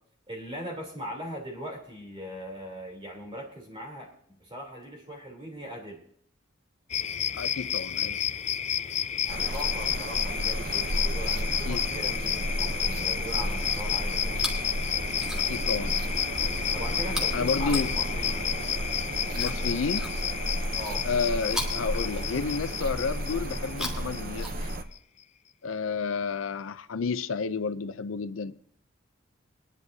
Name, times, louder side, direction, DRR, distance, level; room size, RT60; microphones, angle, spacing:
voice 1, 0.3-6.0 9.2-14.5 16.7-18.5 20.7-21.1, equal, 25° right, 3.3 m, -40 dB
sound 1, 6.9-24.9, left 9 dB, 35° left, 0.4 m, -31 dB
voice 2, 7.3-8.2 11.7-11.8 15.3-15.9 17.3-18.0 19.3-20.1 21.0-24.7 25.6-28.6, left 5 dB, 90° left, 0.5 m, -31 dB
sound 2, 9.3-24.8, right 1 dB, 45° right, 0.7 m, -33 dB
Chewing mastication, 14.2-14.7 15.1-15.7 17.0-18.4 19.3-20.6 21.4-22.7 23.6-25.0 25.9-26.0, left 1 dB, 5° right, 1.7 m, -39 dB
22.0 x 10.5 x 2.7 m
head